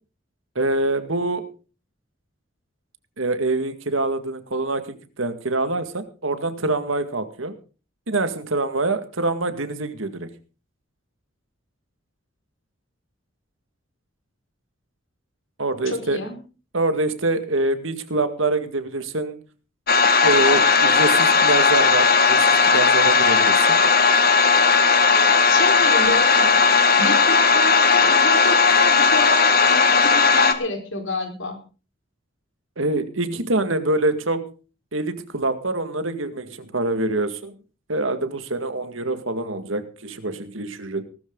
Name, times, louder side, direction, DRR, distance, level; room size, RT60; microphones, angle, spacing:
voice 1, 0.6-1.5 3.2-7.6 8.1-10.3 15.6-16.2 16.7-19.4 20.2-23.8 32.8-34.5 34.9-37.5 37.9-41.0, right 2 dB, 75° right, 9 dB, 2.0 m, -25 dB
voice 2, 15.9-16.4 25.5-26.6 27.0-31.6, left 2 dB, 75° left, 4 dB, 4.5 m, -29 dB
sound 1, 19.9-30.5, left 4 dB, 50° left, 1.7 m, -16 dB
19.0 x 13.0 x 3.9 m, 0.35 s
head